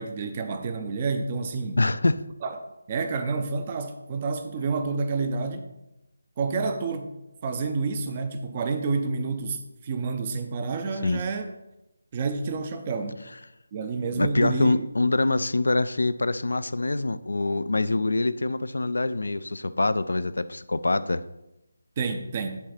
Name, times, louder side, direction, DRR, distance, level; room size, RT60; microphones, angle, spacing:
voice 1, 0.0-1.8 2.4-2.6 2.9-5.7 6.4-7.2 7.4-11.5 12.1-13.2 13.7-14.9 22.0-22.6, right 4 dB, 25° right, 8 dB, 0.6 m, -29 dB
voice 2, 1.8-2.2 11.0-11.2 14.2-21.2, left 2 dB, 60° left, 14 dB, 0.4 m, -25 dB
10.5 x 3.9 x 4.2 m, 0.93 s
figure-of-eight pair, 155°, 0 cm